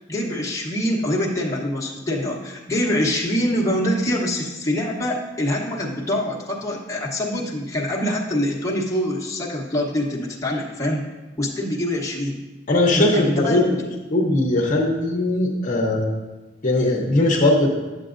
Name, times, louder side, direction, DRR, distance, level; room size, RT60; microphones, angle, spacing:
voice 1, 0.0-11.0 11.4-12.4 13.0-13.8, left 1 dB, 15° left, -4 dB, 0.9 m, -24 dB
voice 2, 12.7-13.8 14.1-16.1 16.6-17.7, left 1 dB, 45° left, -1 dB, 0.8 m, -19 dB
9.8 x 6.9 x 2.5 m, 1.2 s
head